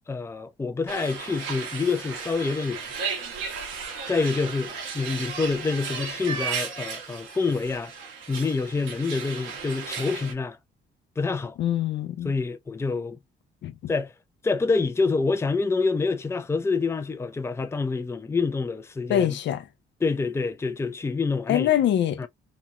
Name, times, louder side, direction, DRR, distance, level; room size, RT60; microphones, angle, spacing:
voice 1, 0.1-2.8 4.1-7.9 8.3-10.6 11.2-11.6 12.2-13.2 13.9-14.1 14.4-19.4 20.0-21.7 22.2-22.3, left 4 dB, 15° left, 0.4 m, -27 dB
sound 1, 0.9-10.3, right 5 dB, 85° right, 1.1 m, -35 dB
voice 2, 11.6-12.3 13.6-13.9 19.1-19.6 21.5-22.3, left 11 dB, 65° left, 0.5 m, -24 dB
3.0 x 2.2 x 2.5 m
cardioid pair, 90°, 20 cm